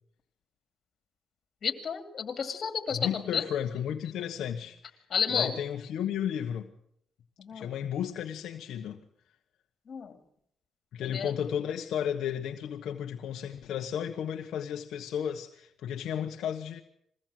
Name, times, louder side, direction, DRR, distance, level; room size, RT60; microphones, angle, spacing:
voice 1, 1.6-3.5 5.1-5.6 7.4-7.8 9.9-10.2 11.0-11.3, left 7 dB, 50° left, 2.5 m, -31 dB
voice 2, 2.9-4.8 5.3-6.7 7.5-9.0 10.9-16.8, left 9 dB, 75° left, 1.2 m, -33 dB
22.0 x 16.5 x 7.6 m
cardioid pair, 90°, 0 cm